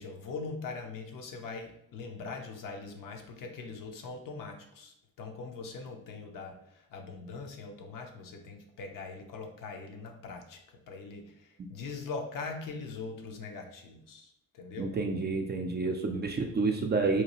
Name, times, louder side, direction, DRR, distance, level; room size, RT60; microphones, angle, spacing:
voice 1, 0.0-14.9, left 4 dB, 60° left, 3 dB, 0.7 m, -42 dB
voice 2, 14.8-17.2, right 3 dB, 30° right, 3 dB, 0.4 m, -29 dB
2.8 x 2.3 x 2.9 m, 0.73 s
hypercardioid pair, 50°, 38 cm